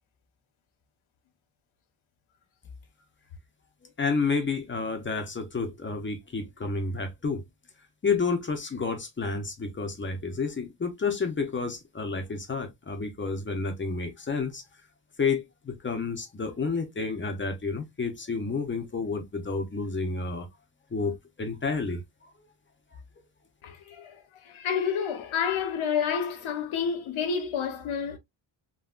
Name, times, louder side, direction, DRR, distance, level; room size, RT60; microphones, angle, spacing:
voice 1, 4.0-7.4 8.0-14.6 15.2-20.5 20.9-22.0, left 4 dB, 25° left, 0.6 m, -30 dB
voice 2, 23.6-28.2, left 7 dB, 80° left, 1.0 m, -29 dB
3.5 x 2.2 x 2.3 m
wide cardioid pair, 170°, 48 cm